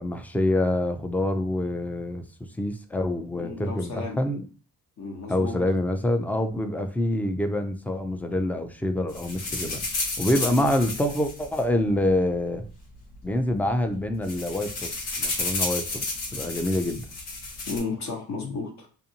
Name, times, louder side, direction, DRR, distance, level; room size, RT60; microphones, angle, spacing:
voice 1, 0.0-2.2 2.6-4.4 5.3-9.8 10.2-12.7 13.2-17.0, left 1 dB, 5° left, 6 dB, 0.3 m, -26 dB
voice 2, 3.3-4.2 5.0-5.6 10.4-10.7 17.7-18.9, left 4 dB, 45° left, 0 dB, 0.9 m, -33 dB
sound 1, 9.1-12.3 13.1-13.2 13.5-13.7 14.0-17.8, left 3 dB, 75° left, 1.1 m, -32 dB
2.6 x 2.5 x 2.7 m, 0.39 s
cardioid pair, 80°, 38 cm